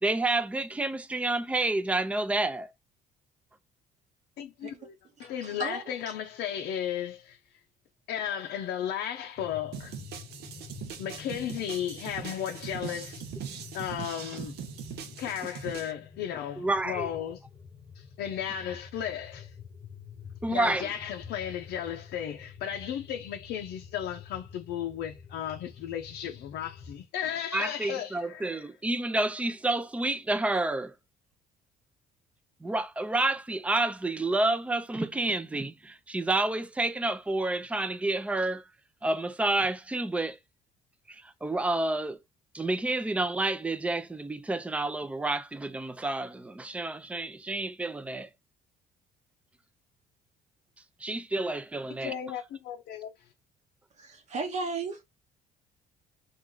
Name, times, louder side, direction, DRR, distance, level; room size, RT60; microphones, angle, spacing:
voice 1, 0.0-2.7 16.6-17.1 20.4-20.9 27.5-31.0 32.6-38.7 39.0-40.4 41.1-42.2 42.5-48.3 51.0-52.2, right 2 dB, 5° right, 0.4 m, -29 dB
voice 2, 4.4-4.9 5.2-7.4 8.1-9.9 11.0-13.3 13.7-14.5 15.2-17.4 17.9-19.5 20.5-28.6 52.0-53.3, left 10 dB, 75° left, 0.5 m, -35 dB
voice 3, 5.2-5.9 54.0-55.0, right 3 dB, 45° right, 0.8 m, -35 dB
sound 1, 9.4-27.0, left 7 dB, 35° left, 0.6 m, -48 dB
sound 2, 9.7-15.9, right 9 dB, 75° right, 0.6 m, -41 dB
3.1 x 2.4 x 3.7 m
cardioid pair, 110°, 17 cm